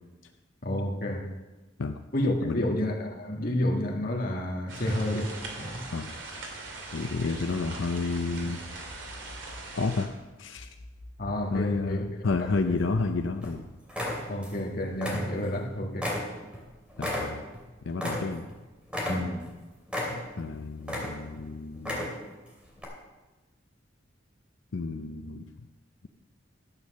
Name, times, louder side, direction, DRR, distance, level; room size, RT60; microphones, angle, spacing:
voice 1, 0.6-1.3 2.1-5.9 11.2-12.0 12.7-12.8 14.3-16.1 19.1-19.5, left 1 dB, 50° left, 1.8 m, -30 dB
sound 1, 4.7-10.1, right 3 dB, 75° right, 2.4 m, -41 dB
voice 2, 6.9-8.6 9.7-10.1 10.4-10.7 11.5-13.6 15.4-15.5 17.0-17.5 17.8-18.4 20.4-22.0 24.7-25.5, left 3 dB, 85° left, 0.6 m, -30 dB
sound 2, 8.6-10.2 10.6-13.6, left 1 dB, 65° left, 1.3 m, -48 dB
sound 3, 12.4-13.0 13.4-13.6 13.9-14.6 14.9-15.6 16.0-18.6 18.9-19.5 19.9-20.5 20.8-21.4 21.8-22.3 22.8-22.9, left 1 dB, 5° right, 2.7 m, -33 dB
12.5 x 8.4 x 6.5 m
head